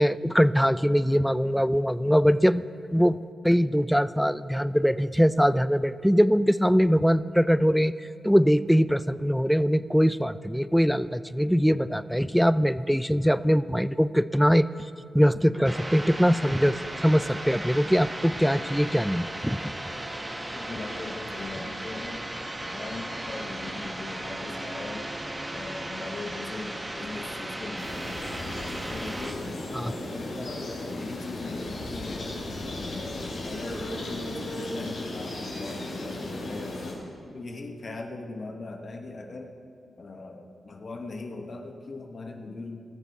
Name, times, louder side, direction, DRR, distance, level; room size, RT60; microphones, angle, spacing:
voice 1, 0.0-2.6 2.9-7.9 8.2-14.7 15.1-19.7 29.7-29.9, equal, ahead, 15 dB, 0.4 m, -22 dB
sound 1, 15.6-29.3, right 1 dB, 25° right, 1.4 m, -36 dB
voice 2, 20.5-22.2 22.6-25.1 25.5-28.1 28.9-29.4 29.8-32.4 32.8-37.0 37.3-39.5 40.0-42.8, left 3 dB, 55° left, 3 dB, 1.1 m, -40 dB
sound 2, 27.8-36.9, left 2 dB, 75° left, 3.6 m, -35 dB
20.5 x 6.9 x 4.3 m, 2.3 s
supercardioid pair, 50°, 0 cm